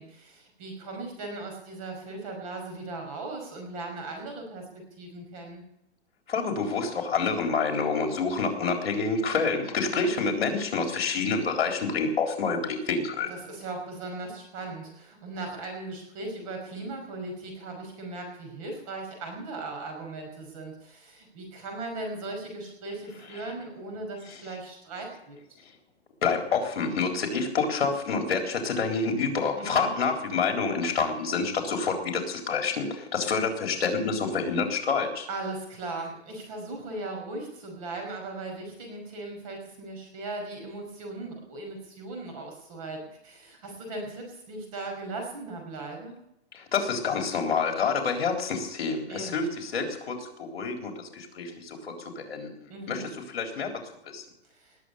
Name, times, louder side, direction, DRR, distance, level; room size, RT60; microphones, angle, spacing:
voice 1, 0.0-5.6 9.9-10.1 13.3-25.4 29.6-29.9 35.3-46.2 49.1-49.4 52.7-53.1 54.6-54.8, right 2 dB, 30° right, 3 dB, 5.4 m, -38 dB
voice 2, 6.3-13.3 23.3-23.5 24.3-24.4 25.6-25.7 26.2-35.3 46.5-53.7 54.0-54.2, left 4 dB, 60° left, 3 dB, 3.9 m, -28 dB
20.0 x 7.7 x 8.3 m, 0.83 s
hypercardioid pair, 175°, 34 cm